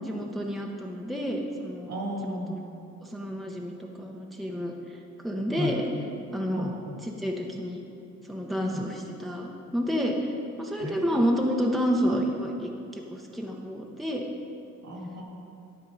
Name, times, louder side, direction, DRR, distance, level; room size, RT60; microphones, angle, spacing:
voice 1, 0.0-1.9 2.2-2.6 3.0-5.8 6.3-6.7 7.0-7.8 8.2-14.2, equal, ahead, 0 dB, 0.8 m, -30 dB
voice 2, 1.9-2.5 5.5-5.7 6.5-6.9 8.6-8.8 10.8-11.3 14.8-15.2, left 1 dB, 70° right, -1 dB, 2.1 m, -34 dB
12.0 x 4.5 x 5.4 m, 2.7 s
cardioid pair, 90°, 30 cm